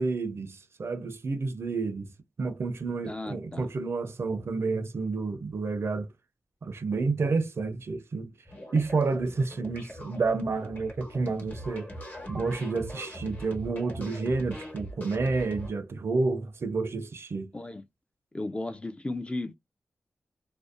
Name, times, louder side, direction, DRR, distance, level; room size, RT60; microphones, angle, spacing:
voice 1, 0.0-2.1 2.4-6.1 6.6-8.3 8.7-11.9 12.3-17.5, right 3 dB, 60° right, 0.4 m, -30 dB
voice 2, 3.0-3.7 17.5-17.8 18.3-19.6, left 2 dB, 20° left, 0.3 m, -35 dB
sound 1, 8.5-15.7, equal, 40° left, 1.0 m, -42 dB
2.5 x 2.0 x 2.5 m
cardioid pair, 45°, 5 cm